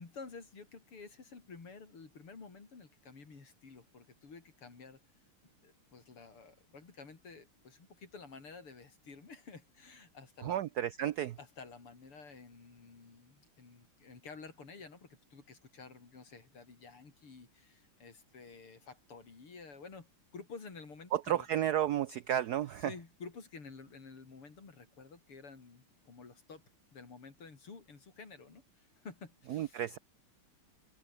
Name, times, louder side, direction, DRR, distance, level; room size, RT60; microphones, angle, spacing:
voice 1, 0.0-5.0 5.6-10.6 11.4-21.5 22.8-26.6 26.9-29.8, left 4 dB, 90° left, 5.1 m, -51 dB
voice 2, 10.4-11.4 21.1-22.9 29.5-30.0, right 11 dB, 85° right, 0.8 m, -32 dB
omnidirectional pair, 2.4 m